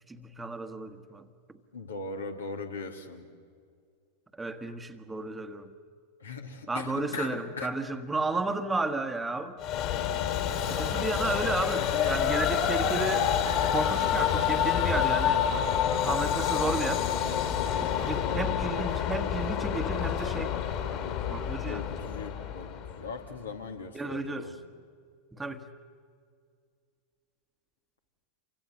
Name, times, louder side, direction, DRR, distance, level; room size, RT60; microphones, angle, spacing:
voice 1, 0.1-1.3 4.3-5.7 6.7-9.6 10.6-13.3 13.7-15.5 16.0-17.0 17.8-20.5 21.3-21.8 23.9-24.5 25.3-25.6, right 3 dB, 10° right, 8 dB, 1.6 m, -33 dB
voice 2, 1.7-3.3 6.2-7.7 10.9-11.2 21.7-24.6, left 4 dB, 70° left, 4 dB, 3.0 m, -39 dB
Train, 9.6-23.1, left 9 dB, 40° left, 3.8 m, -28 dB
29.0 x 25.0 x 8.0 m, 2.1 s
figure-of-eight pair, 90°, 0 cm